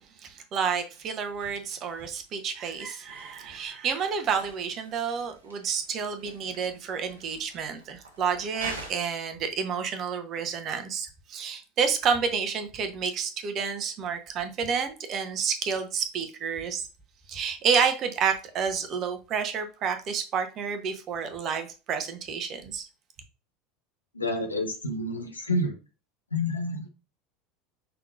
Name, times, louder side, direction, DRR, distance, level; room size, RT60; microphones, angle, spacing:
voice 1, 0.2-16.9 17.3-22.8, right 6 dB, 40° right, 0.9 m, -29 dB
sound 1, 0.9-8.9, right 2 dB, 75° right, 1.1 m, -47 dB
voice 2, 24.1-25.7 26.3-26.9, left 1 dB, 80° left, 0.9 m, -29 dB
5.8 x 3.7 x 2.5 m
figure-of-eight pair, 75°, 0 cm